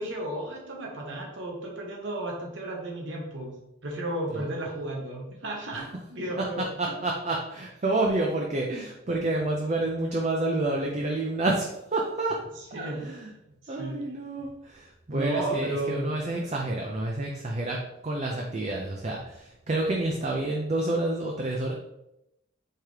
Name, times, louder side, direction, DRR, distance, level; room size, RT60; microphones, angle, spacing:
voice 1, 0.0-3.5 3.8-7.0 12.7-13.0 13.6-14.0 15.1-16.2, right 1 dB, 70° right, -1 dB, 1.0 m, -33 dB
voice 2, 6.4-12.4 12.7-13.3 13.7-17.8 18.0-21.7, right 2 dB, 35° right, 0 dB, 0.4 m, -29 dB
4.6 x 3.5 x 3.2 m, 0.85 s
head